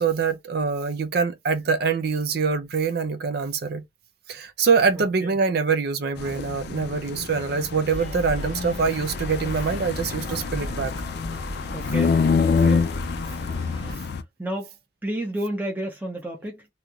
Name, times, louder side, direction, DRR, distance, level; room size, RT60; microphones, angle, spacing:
voice 1, 0.0-3.8 4.3-10.9, right 5 dB, 60° right, 0.5 m, -24 dB
voice 2, 4.9-5.4 11.7-12.2 12.4-12.9 14.4-14.7 15.0-16.7, right 1 dB, 10° right, 0.8 m, -31 dB
sound 1, 6.2-14.2, left 5 dB, 65° left, 0.4 m, -26 dB
sound 2, 7.9-14.0, equal, 40° right, 1.3 m, -36 dB
3.0 x 2.8 x 2.3 m
head